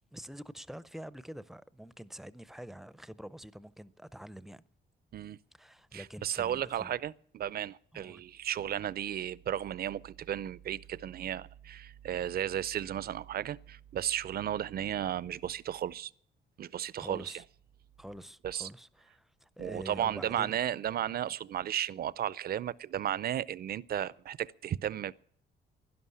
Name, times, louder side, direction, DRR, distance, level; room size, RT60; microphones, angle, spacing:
voice 1, 0.1-4.6 5.5-6.9 7.9-8.2 17.0-17.4 18.0-20.6 21.3-21.4, equal, ahead, 0.6 m, -46 dB
voice 2, 5.9-16.1 16.6-17.3 18.4-18.7 19.6-25.1, right 10 dB, 50° right, 0.5 m, -34 dB
11.0 x 11.0 x 9.6 m
cardioid pair, 90°, 20 cm